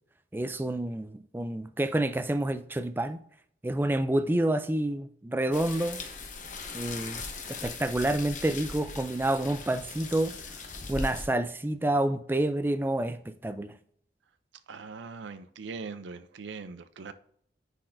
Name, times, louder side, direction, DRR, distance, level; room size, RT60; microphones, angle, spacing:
voice 1, 0.3-3.2 3.6-6.0 6.7-7.2 7.5-10.3 10.9-13.7, right 1 dB, 10° right, 0.3 m, -28 dB
sound 1, 5.5-11.3, left 3 dB, 45° left, 0.9 m, -39 dB
voice 2, 14.7-17.1, right 4 dB, 85° right, 0.5 m, -41 dB
9.8 x 4.1 x 2.6 m
head